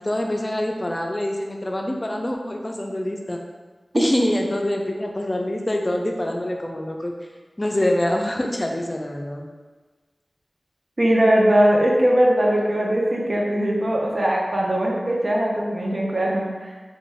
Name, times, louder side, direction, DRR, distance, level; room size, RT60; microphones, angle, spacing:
voice 1, 0.0-3.4 3.9-7.1 7.6-9.5, left 1 dB, 35° left, 2 dB, 0.4 m, -25 dB
voice 2, 11.0-16.8, right 1 dB, 50° right, -2 dB, 0.6 m, -20 dB
2.6 x 2.2 x 3.1 m, 1.3 s
cardioid pair, 40°, 0 cm